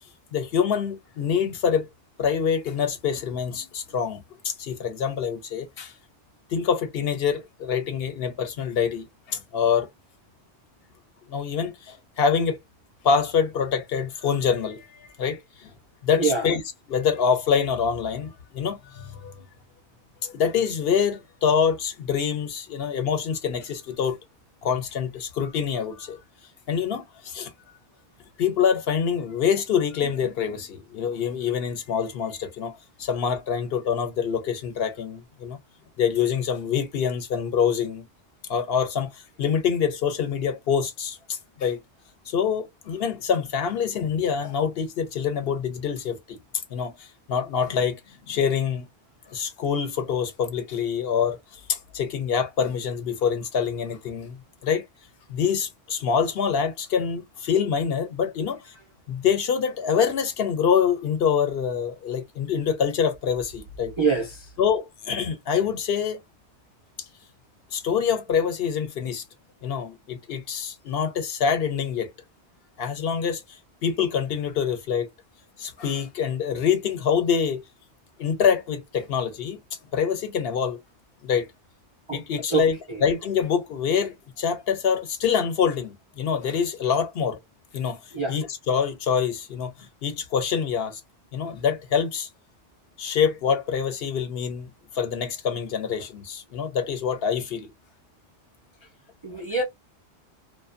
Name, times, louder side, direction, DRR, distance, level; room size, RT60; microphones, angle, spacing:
voice 1, 0.3-1.9 2.2-5.9 6.5-9.9 11.3-12.6 13.0-15.7 16.0-16.6 16.9-19.4 20.2-24.2 24.6-26.2 26.7-27.5 28.4-35.6 36.0-38.1 38.5-41.8 42.3-46.4 46.7-48.0 48.3-48.9 49.3-54.4 54.6-54.8 55.3-58.6 59.1-63.9 64.6-66.2 67.7-69.2 69.6-72.1 72.8-75.1 75.6-77.7 78.2-79.6 79.9-80.8 81.2-81.5 82.1-87.4 87.7-88.0 88.3-89.7 90.0-91.0 91.3-92.3 93.0-94.7 94.9-97.7, left 7 dB, 65° left, 0.8 m, -25 dB
voice 2, 64.0-64.5 82.1-82.2 82.5-82.6 88.1-88.3 99.2-99.6, right 4 dB, 50° right, 0.3 m, -24 dB
2.5 x 2.2 x 2.4 m
omnidirectional pair, 1.2 m